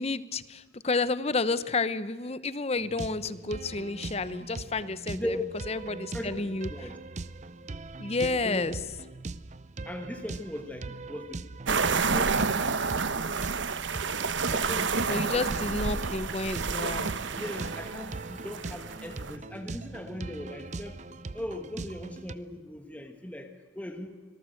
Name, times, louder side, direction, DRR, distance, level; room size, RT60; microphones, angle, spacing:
voice 1, 0.0-5.2 5.7-6.7 8.0-8.8 15.0-17.1, left 3 dB, 35° left, 15 dB, 0.8 m, -30 dB
sound 1, 2.7-22.3, right 3 dB, 40° right, 0.6 m, -41 dB
voice 2, 5.1-5.7 6.1-7.0 8.2-8.8 9.8-11.4 11.7-12.6 14.5-16.0 17.4-21.0 21.3-24.4, left 1 dB, 10° left, 5 dB, 1.3 m, -39 dB
sound 2, 11.7-19.4, right 4 dB, 85° right, 1.0 m, -29 dB
25.0 x 18.5 x 7.8 m, 1.4 s
head